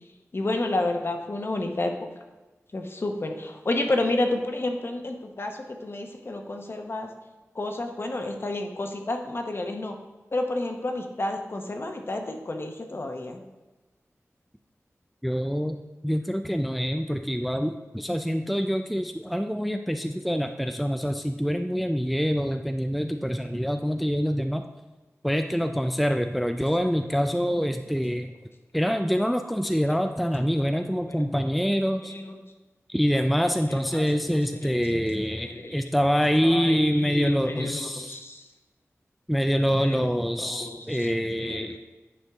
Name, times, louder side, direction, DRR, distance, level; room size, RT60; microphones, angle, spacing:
voice 1, 0.3-1.9 2.7-7.1 7.5-9.9 10.3-13.4 30.6-31.4 32.0-32.4 33.7-35.8 36.2-38.4 39.8-40.0 40.4-41.1 41.4-41.8, left 2 dB, 50° left, 4 dB, 0.9 m, -31 dB
voice 2, 15.2-15.8 16.0-24.6 25.2-28.3 28.7-32.1 32.9-38.2 39.3-41.8, equal, ahead, 6 dB, 0.3 m, -25 dB
9.5 x 4.5 x 3.5 m, 1.2 s
wide cardioid pair, 80°, 5 cm